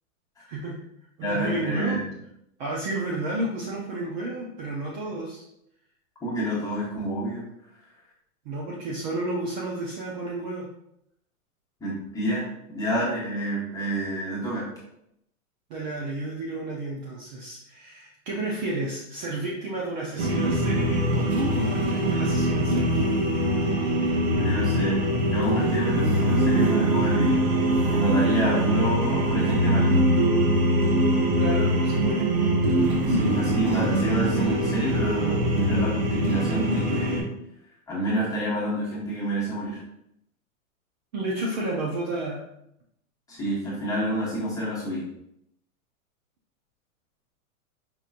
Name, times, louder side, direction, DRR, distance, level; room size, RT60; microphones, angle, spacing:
voice 1, 0.5-0.8 1.2-2.0 2.6-5.4 8.5-10.7 15.7-23.0 31.3-32.3 41.1-42.4, right 2 dB, 35° right, -3 dB, 0.5 m, -31 dB
voice 2, 1.2-2.0 6.2-7.4 11.8-14.7 24.4-27.4 27.9-29.9 33.1-37.3 37.9-39.8 43.3-45.1, right 1 dB, 10° left, -8 dB, 1.1 m, -28 dB
sound 1, 20.2-37.2, right 1 dB, 50° right, 1.0 m, -23 dB
5.1 x 2.9 x 2.4 m, 0.78 s
hypercardioid pair, 150°, 43 cm